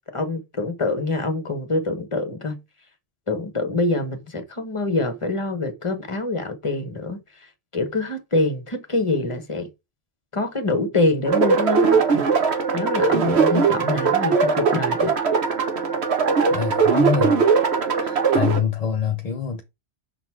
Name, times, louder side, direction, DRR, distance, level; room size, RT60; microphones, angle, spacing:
voice 1, 0.1-2.6 3.3-9.7 10.3-12.3 12.7-15.1, left 2 dB, 30° left, 1.2 m, -25 dB
sound 1, 11.3-18.6, right 5 dB, 80° right, 1.4 m, -20 dB
voice 2, 16.5-17.5 18.0-19.6, left 7 dB, 45° left, 0.6 m, -25 dB
6.0 x 3.9 x 4.5 m
omnidirectional pair, 1.1 m